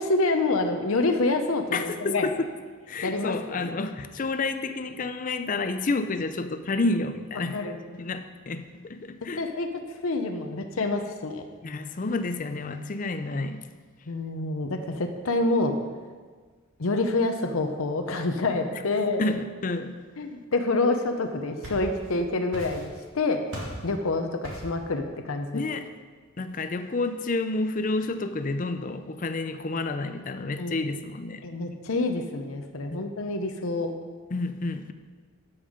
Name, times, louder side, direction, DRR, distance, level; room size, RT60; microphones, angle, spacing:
voice 1, 0.0-2.3 3.0-3.8 7.5-7.8 9.4-9.7 10.0-11.4 14.1-15.7 16.8-19.2 20.2-23.4 23.8-25.6 30.6-30.9 31.4-33.9, left 2 dB, 80° left, 5 dB, 0.8 m, -27 dB
voice 2, 1.7-2.5 2.9-7.6 7.9-9.4 11.6-13.7 18.7-18.8 19.2-19.9 25.5-25.8 26.4-31.4 32.9-33.0 34.3-34.9, left 3 dB, 40° left, 9 dB, 0.5 m, -30 dB
sound 1, 21.2-22.2 22.5-23.1 23.5-23.9 24.4-24.8, equal, 65° right, 2.7 m, -38 dB
12.5 x 5.6 x 5.1 m, 1.5 s
head